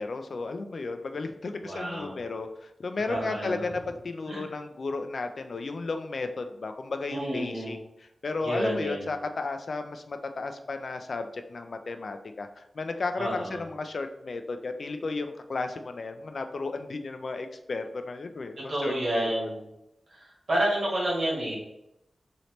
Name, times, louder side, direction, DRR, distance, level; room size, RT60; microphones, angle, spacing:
voice 1, 0.0-19.5, left 3 dB, 65° left, 7 dB, 0.3 m, -34 dB
voice 2, 1.6-2.2 3.1-3.6 4.3-4.5 7.1-7.8 8.4-9.1 13.2-13.6 18.7-19.6 20.1-21.6, right 1 dB, 65° right, -5 dB, 1.4 m, -30 dB
3.1 x 2.8 x 2.9 m, 0.83 s
wide cardioid pair, 90°, 0 cm